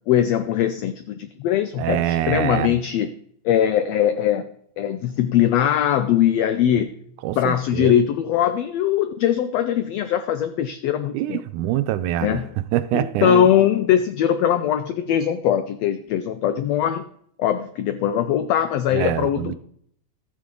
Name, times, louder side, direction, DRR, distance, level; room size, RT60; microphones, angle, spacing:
voice 1, 0.1-3.1 3.4-4.4 4.8-6.9 7.4-11.4 12.2-12.5 12.9-17.0 17.4-19.6, left 10 dB, 85° left, 1.4 m, -21 dB
voice 2, 1.8-2.8 7.2-7.9 11.1-12.4 12.7-13.5 18.9-19.6, right 12 dB, 80° right, 2.0 m, -24 dB
13.0 x 8.7 x 3.8 m
omnidirectional pair, 3.6 m